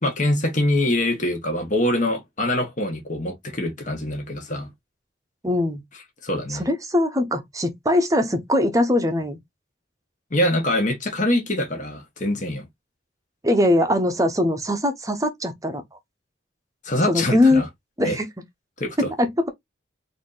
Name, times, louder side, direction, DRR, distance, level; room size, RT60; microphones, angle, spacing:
voice 1, 0.0-4.7 6.2-6.6 10.3-12.7 16.8-17.7 18.0-18.2 18.8-19.1, left 1 dB, 40° left, 1.5 m, -24 dB
voice 2, 5.4-5.8 6.5-9.4 13.4-15.8 17.1-17.6 18.0-18.3 19.0-19.5, left 1 dB, 15° right, 0.9 m, -21 dB
4.2 x 2.8 x 3.9 m
head